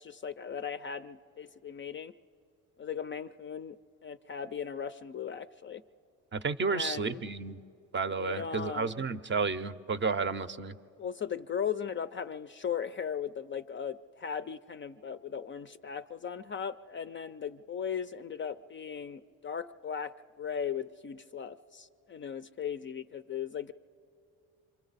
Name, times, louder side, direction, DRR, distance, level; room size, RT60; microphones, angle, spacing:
voice 1, 0.0-2.1 2.8-3.8 4.0-5.8 6.7-7.2 8.2-9.0 11.0-23.7, left 7 dB, 35° left, 10 dB, 0.4 m, -37 dB
voice 2, 6.3-7.6 7.9-10.8, right 4 dB, 30° right, 13 dB, 0.6 m, -32 dB
27.0 x 24.5 x 4.0 m, 2.7 s
supercardioid pair, 80°, 38 cm